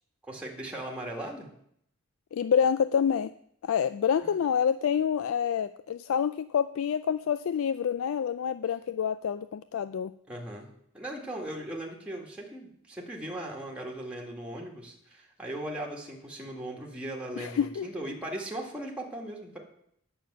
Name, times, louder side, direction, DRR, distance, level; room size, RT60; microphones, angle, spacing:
voice 1, 0.2-1.5 4.2-4.4 10.3-10.7 10.9-19.6, right 1 dB, 5° right, -1 dB, 2.0 m, -38 dB
voice 2, 2.3-3.3 3.6-10.1 17.4-17.9, left 7 dB, 80° left, 14 dB, 0.3 m, -27 dB
9.1 x 6.7 x 7.8 m, 0.70 s
head